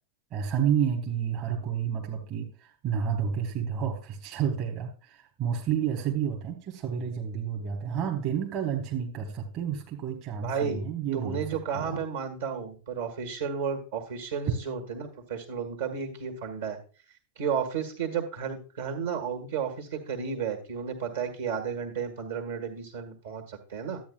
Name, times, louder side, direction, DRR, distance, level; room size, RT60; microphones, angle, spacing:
voice 1, 0.3-11.4 11.7-12.0, right 8 dB, 40° right, 1 dB, 1.3 m, -30 dB
voice 2, 10.4-10.8 11.1-16.8 17.4-24.0, right 6 dB, 60° right, 5 dB, 1.7 m, -32 dB
12.0 x 8.6 x 2.4 m, 0.36 s
figure-of-eight pair, 90°, 0 cm